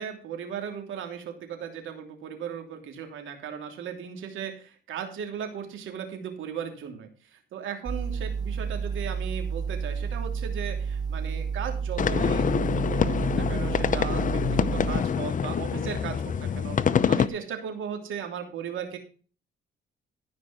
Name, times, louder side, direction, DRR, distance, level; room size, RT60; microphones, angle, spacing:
voice 1, 0.0-16.8 17.1-19.0, right 8 dB, 80° right, 4 dB, 3.1 m, -37 dB
sound 1, 7.9-15.0, right 6 dB, 20° right, 0.6 m, -31 dB
sound 2, 12.0-17.3, left 7 dB, 40° left, 0.7 m, -25 dB
15.0 x 5.3 x 6.0 m, 0.39 s
cardioid pair, 90°, 20 cm